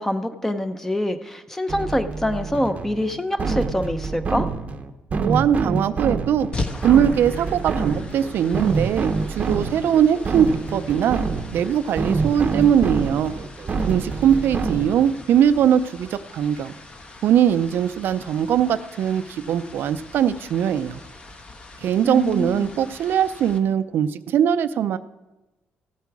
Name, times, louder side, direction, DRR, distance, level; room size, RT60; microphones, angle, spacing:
voice 1, 0.0-4.5 22.0-22.7, left 1 dB, 10° left, 9 dB, 0.7 m, -25 dB
sound 1, 1.7-15.2, right 4 dB, 40° right, 0.7 m, -27 dB
voice 2, 5.2-6.5 6.8-11.2 11.5-13.3 13.9-16.7 17.2-21.0 21.8-25.0, right 9 dB, 70° right, 12 dB, 0.4 m, -20 dB
sound 2, 6.5-23.6, left 2 dB, 30° left, 1.0 m, -40 dB
15.0 x 8.3 x 4.8 m, 1.1 s
cardioid pair, 120°, 4 cm